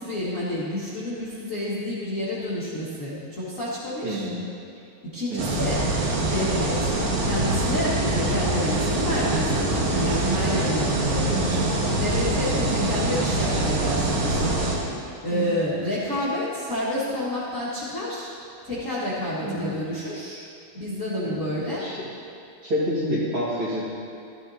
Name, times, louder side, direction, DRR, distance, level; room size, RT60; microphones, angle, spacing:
voice 1, 0.0-4.3 5.0-5.8 6.2-6.9 7.2-11.6 12.0-14.7 15.2-18.3 18.6-20.4 20.7-21.9, left 1 dB, 40° left, -10 dB, 1.1 m, -29 dB
voice 2, 4.0-4.4 5.3-5.7 11.3-11.7 12.6-12.9 15.3-15.7 19.4-19.7 21.2-21.5 21.8-22.1 22.6-23.8, equal, 40° right, -8 dB, 2.2 m, -29 dB
sound 1, 5.4-14.8, right 2 dB, 85° right, 3.4 m, -24 dB
14.0 x 12.5 x 2.8 m, 2.6 s
omnidirectional pair, 4.3 m